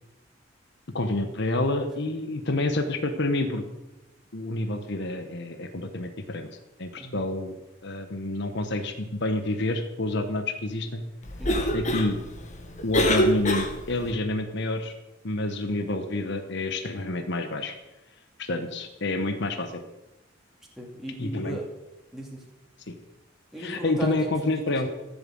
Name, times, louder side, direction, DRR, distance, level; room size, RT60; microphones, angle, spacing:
voice 1, 0.9-3.6 4.3-6.5 6.8-7.5 7.8-11.0 11.7-12.2 12.8-14.9 15.2-17.7 18.4-19.7 21.2-21.6 22.9-23.0 23.6-24.9, left 2 dB, 60° left, 6 dB, 1.2 m, -28 dB
Cough, 11.2-14.1, equal, 40° left, 1.7 m, -26 dB
voice 2, 11.4-11.8 20.8-21.7 22.1-22.4 23.5-24.1 24.4-24.6, equal, ahead, -3 dB, 2.6 m, -36 dB
14.5 x 7.3 x 7.7 m, 1.0 s
head